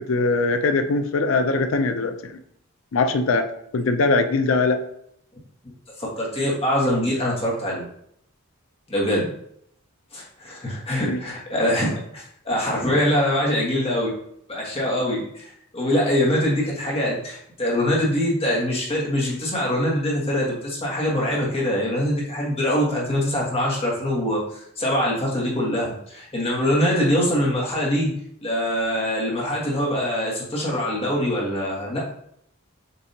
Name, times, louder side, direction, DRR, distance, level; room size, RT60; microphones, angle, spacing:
voice 1, 0.0-2.4 2.9-4.8 11.1-11.2, left 3 dB, 60° left, 8 dB, 0.4 m, -21 dB
voice 2, 6.0-7.9 8.9-9.3 10.1-14.1 14.5-15.5 15.7-28.1 28.4-32.1, equal, 25° left, -4 dB, 1.4 m, -23 dB
6.8 x 2.7 x 2.8 m, 0.71 s
head